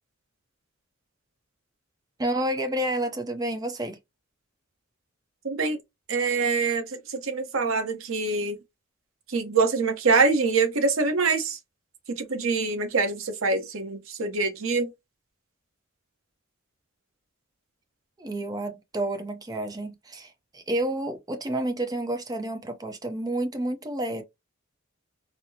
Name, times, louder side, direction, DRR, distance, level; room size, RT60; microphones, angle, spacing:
voice 1, 2.2-4.0 18.2-24.2, right 1 dB, 20° right, 0.6 m, -30 dB
voice 2, 5.4-5.8 6.1-8.6 9.3-11.6 12.1-14.9, right 4 dB, 75° right, 0.9 m, -25 dB
4.2 x 2.0 x 2.6 m
head